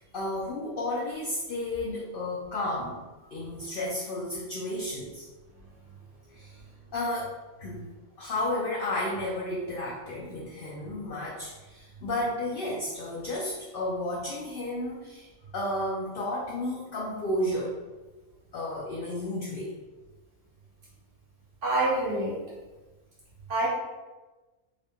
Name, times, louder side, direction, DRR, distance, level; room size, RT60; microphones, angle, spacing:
voice 1, 0.0-3.0 3.3-5.3 6.3-6.6 6.9-7.9 8.2-17.7 18.5-19.7, left 1 dB, 60° left, -4 dB, 0.6 m, -32 dB
voice 2, 21.6-22.3 23.5-23.7, right 2 dB, 65° right, -7 dB, 1.2 m, -26 dB
3.6 x 2.1 x 3.5 m, 1.2 s
omnidirectional pair, 1.4 m